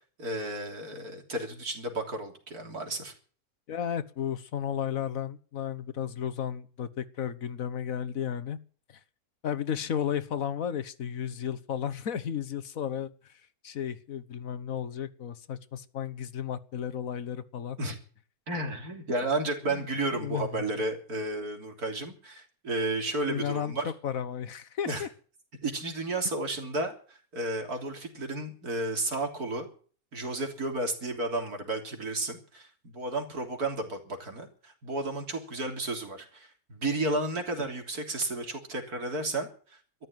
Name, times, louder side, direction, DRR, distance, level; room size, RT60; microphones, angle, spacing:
voice 1, 0.2-3.1 17.8-18.0 18.5-23.9 24.9-25.1 25.6-29.7 30.1-40.1, right 2 dB, 85° right, 3 dB, 3.9 m, -32 dB
voice 2, 3.7-8.6 9.4-13.3 13.6-17.8 19.7-19.9 20.1-20.6 23.2-23.7 24.0-25.1, left 9 dB, 65° left, 14 dB, 1.4 m, -33 dB
13.5 x 11.5 x 9.0 m, 0.43 s
omnidirectional pair, 1.6 m